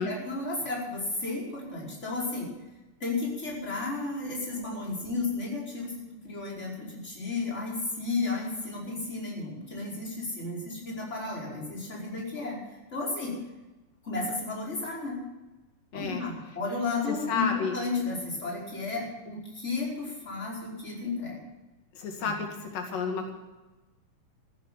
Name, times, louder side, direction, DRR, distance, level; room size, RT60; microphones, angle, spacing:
voice 1, 0.0-2.5 3.0-5.9 6.2-13.3 14.0-15.2 15.9-21.4 22.2-22.3, left 3 dB, 20° left, -3 dB, 5.2 m, -33 dB
voice 2, 15.9-16.2 17.1-17.7 22.0-23.3, left 5 dB, 90° left, 2 dB, 3.8 m, -31 dB
14.5 x 13.5 x 5.8 m, 1.1 s
omnidirectional pair, 3.7 m